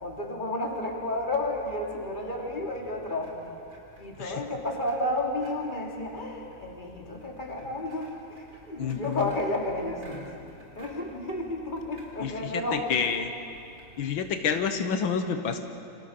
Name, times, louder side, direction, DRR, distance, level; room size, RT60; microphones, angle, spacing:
voice 1, 0.0-3.3 4.0-8.1 8.7-10.3 10.8-12.9, left 1 dB, 25° left, -1 dB, 3.4 m, -31 dB
sound 1, 3.2-15.1, right 1 dB, 60° right, 4.6 m, -55 dB
voice 2, 8.8-9.2 12.2-12.3 12.9-13.3 14.0-15.6, left 6 dB, 85° left, 7 dB, 2.0 m, -28 dB
28.5 x 26.0 x 6.8 m, 2.6 s
omnidirectional pair, 2.1 m